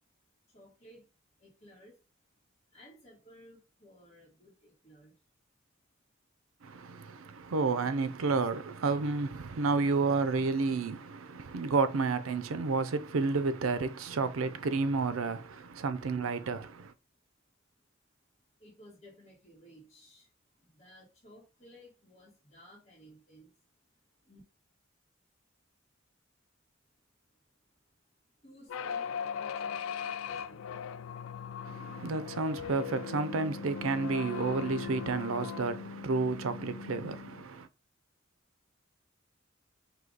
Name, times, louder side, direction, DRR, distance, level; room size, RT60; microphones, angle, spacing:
voice 1, 0.5-1.0 1.4-2.0 2.7-5.2 18.6-20.3 20.6-23.5 24.2-24.4 28.4-30.8, equal, 35° left, 1.5 m, -57 dB
voice 2, 6.6-16.9 31.6-37.7, right 4 dB, 85° right, 0.5 m, -31 dB
sound 1, 28.7-37.4, left 7 dB, 80° left, 0.3 m, -39 dB
4.8 x 2.7 x 3.9 m
head